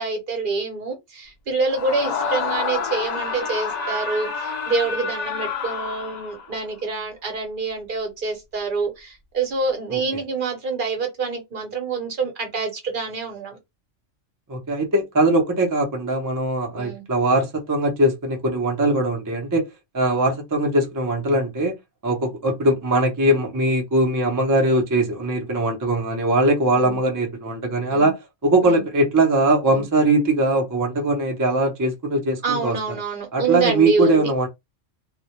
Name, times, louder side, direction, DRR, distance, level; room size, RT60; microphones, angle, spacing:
voice 1, 0.0-13.6 16.7-17.0 26.7-27.0 27.9-28.1 28.6-28.8 29.7-29.8 32.4-34.3, right 4 dB, 50° right, 0.8 m, -26 dB
Screaming, 1.7-6.5, left 5 dB, 70° left, 0.4 m, -28 dB
voice 2, 14.5-19.6 19.9-21.7 22.0-32.8 33.3-34.5, right 1 dB, 35° right, 0.3 m, -21 dB
2.1 x 2.1 x 2.8 m
omnidirectional pair, 1.3 m